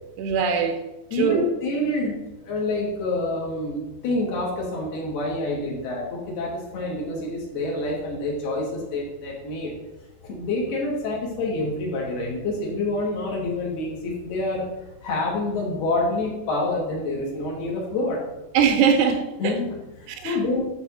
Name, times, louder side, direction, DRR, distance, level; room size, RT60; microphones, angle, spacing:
voice 1, 0.2-0.8 1.2-1.5 18.5-19.5 20.2-20.4, right 7 dB, 90° right, 3.0 m, -21 dB
voice 2, 1.1-9.7 10.2-14.7 15.0-18.3 19.4-20.6, left 2 dB, 70° left, 4.2 m, -27 dB
10.5 x 4.4 x 7.1 m
omnidirectional pair, 4.8 m